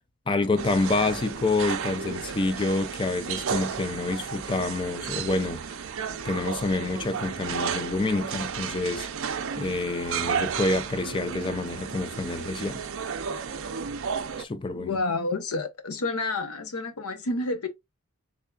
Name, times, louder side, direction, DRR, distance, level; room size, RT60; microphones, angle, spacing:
voice 1, 0.3-5.6 6.2-9.1 9.6-12.8 14.4-15.0, left 2 dB, 20° left, 0.4 m, -27 dB
sound 1, 0.6-14.4, right 6 dB, 65° right, 0.5 m, -33 dB
voice 2, 14.8-17.7, left 2 dB, 85° left, 0.8 m, -29 dB
3.6 x 3.4 x 2.3 m
head